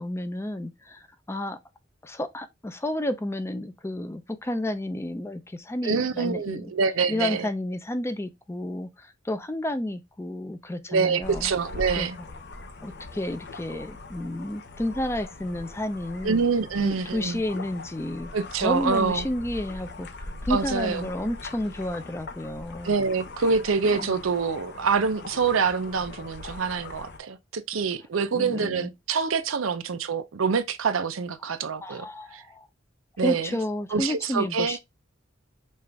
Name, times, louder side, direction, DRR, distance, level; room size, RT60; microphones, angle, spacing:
voice 1, 0.0-1.6 2.0-6.7 7.1-11.5 12.0-12.1 12.8-16.4 16.8-18.3 18.6-22.9 23.9-24.1 28.3-28.9 31.8-32.7 33.2-34.8, left 1 dB, 15° left, 0.5 m, -31 dB
voice 2, 5.8-7.5 10.9-12.2 16.2-17.4 18.3-19.3 20.5-21.1 22.8-32.4 33.2-33.5 33.9-34.8, right 5 dB, 90° right, 0.6 m, -26 dB
sound 1, 11.2-27.2, left 2 dB, 60° left, 0.9 m, -40 dB
5.4 x 2.5 x 3.3 m
head